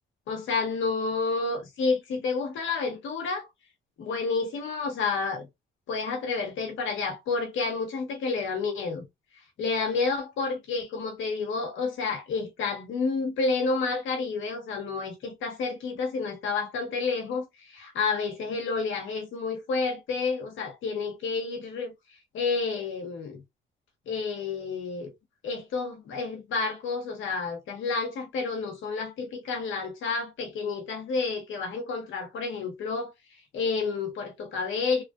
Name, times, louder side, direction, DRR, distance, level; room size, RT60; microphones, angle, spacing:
voice 1, 0.3-3.5 4.0-5.5 5.9-9.1 9.6-21.9 22.3-23.4 24.1-25.1 25.4-33.1 33.5-35.0, left 4 dB, 80° left, 1.3 m, -30 dB
3.3 x 2.5 x 2.3 m
cardioid pair, 90°, 20 cm